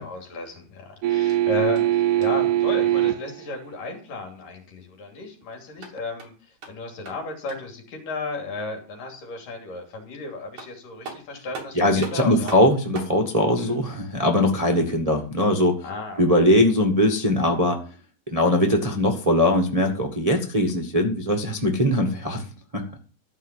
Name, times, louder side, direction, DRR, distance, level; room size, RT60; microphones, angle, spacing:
voice 1, 0.0-6.3 6.7-12.5 13.6-13.8 14.7-14.8 15.8-16.2, left 3 dB, 70° left, 2 dB, 4.4 m, -34 dB
sound 1, 1.0-3.4 6.0-6.1, right 13 dB, 75° right, 2.1 m, -21 dB
sound 2, 1.3-2.6 5.6-7.8 10.1-10.2 10.6-13.2, right 4 dB, 55° right, 4.0 m, -42 dB
voice 2, 11.7-15.8 16.2-17.8 18.3-22.4 22.7-22.8, left 1 dB, 30° right, 2 dB, 0.6 m, -21 dB
13.5 x 5.7 x 7.4 m, 0.38 s
omnidirectional pair, 4.0 m